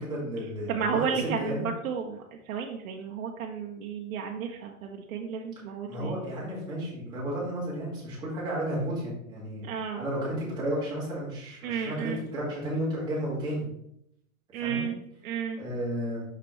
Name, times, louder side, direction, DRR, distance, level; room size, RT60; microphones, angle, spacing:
voice 1, 0.0-1.7 5.9-9.7 10.0-13.6 14.6-14.8 15.6-16.2, right 1 dB, 10° right, -7 dB, 2.0 m, -32 dB
voice 2, 0.7-6.2 9.7-10.0 11.6-12.2 14.5-15.0 15.2-15.6, right 6 dB, 70° right, 1 dB, 0.9 m, -32 dB
6.0 x 5.9 x 3.1 m, 0.75 s
supercardioid pair, 170°, 43 cm